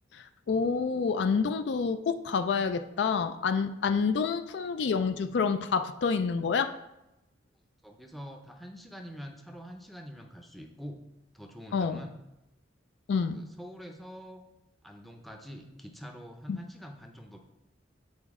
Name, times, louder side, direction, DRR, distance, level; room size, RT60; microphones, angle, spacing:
voice 1, 0.1-6.7 11.7-12.0 13.1-13.4 16.5-16.6, left 5 dB, 65° left, 9 dB, 0.4 m, -28 dB
voice 2, 7.8-11.0 11.3-12.2 13.3-14.4 14.8-17.4, equal, ahead, 3 dB, 0.5 m, -45 dB
8.0 x 4.1 x 3.6 m, 0.91 s
head